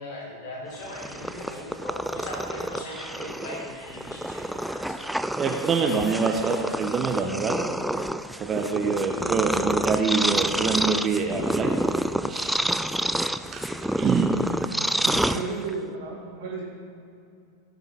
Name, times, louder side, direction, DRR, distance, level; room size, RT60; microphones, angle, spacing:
voice 1, 0.0-5.1 6.4-6.8, left 1 dB, 50° left, -2 dB, 2.4 m, -39 dB
Purr, 0.7-15.9, right 1 dB, ahead, 0.3 m, -28 dB
voice 2, 5.4-7.6 8.4-11.7 12.2-12.6 13.5-14.6, right 5 dB, 25° right, 3 dB, 0.9 m, -26 dB
voice 3, 15.0-16.7, right 4 dB, 55° right, -6 dB, 2.2 m, -33 dB
16.5 x 6.1 x 5.3 m, 2.6 s
figure-of-eight pair, 90°, 0 cm